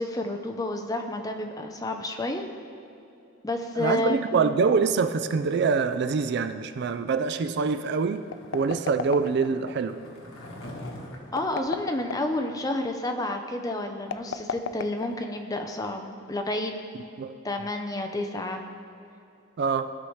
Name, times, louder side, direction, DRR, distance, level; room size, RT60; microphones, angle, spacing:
voice 1, 0.0-2.5 3.4-4.2 11.3-16.7 17.4-18.6, left 2 dB, 20° left, 4 dB, 0.6 m, -30 dB
voice 2, 3.8-8.3 8.5-10.0 17.2-17.4 19.6-19.9, right 5 dB, 55° right, 10 dB, 0.4 m, -25 dB
Skateboard, 7.4-12.8, left 1 dB, 90° left, 1.4 m, -45 dB
sound 1, 8.2-9.7 11.3-12.4 14.0-15.6, left 6 dB, 65° left, 0.3 m, -34 dB
16.0 x 5.7 x 3.2 m, 2.7 s
head